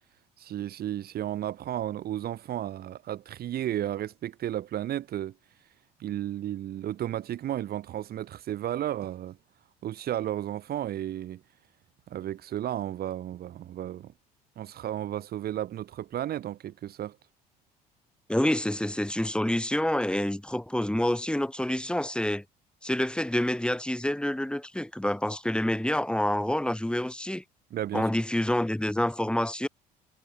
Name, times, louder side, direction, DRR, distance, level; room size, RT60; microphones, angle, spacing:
voice 1, 0.4-5.3 6.0-9.4 9.8-11.4 12.1-14.1 14.6-17.2 27.7-28.1, right 12 dB, 45° right, 2.2 m, -33 dB
voice 2, 18.3-22.4 22.8-27.4 27.9-29.7, left 1 dB, 5° left, 6.2 m, -27 dB
figure-of-eight pair, 60°, 21 cm